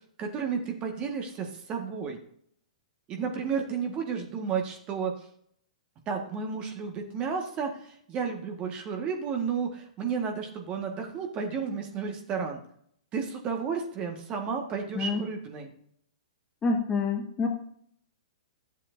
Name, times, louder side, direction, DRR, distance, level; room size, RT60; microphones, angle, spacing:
voice 1, 0.2-2.2 3.1-5.1 6.1-12.6 13.1-15.7, right 6 dB, 30° right, 3 dB, 1.6 m, -32 dB
voice 2, 16.6-17.5, left 4 dB, 20° left, 2 dB, 1.7 m, -27 dB
12.0 x 7.4 x 2.6 m, 0.65 s
hypercardioid pair, 120°, 4 cm